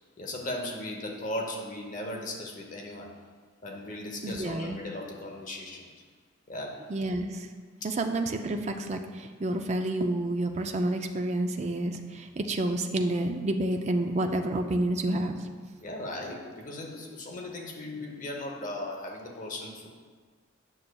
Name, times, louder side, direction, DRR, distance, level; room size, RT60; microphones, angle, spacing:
voice 1, 0.2-3.1 3.6-5.9 6.5-6.8 7.8-7.9 15.8-19.9, left 1 dB, 40° left, 1 dB, 0.8 m, -37 dB
voice 2, 4.2-4.8 6.9-7.5 7.8-15.4, right 1 dB, 35° right, 5 dB, 0.4 m, -29 dB
8.6 x 6.5 x 2.3 m, 1.5 s
head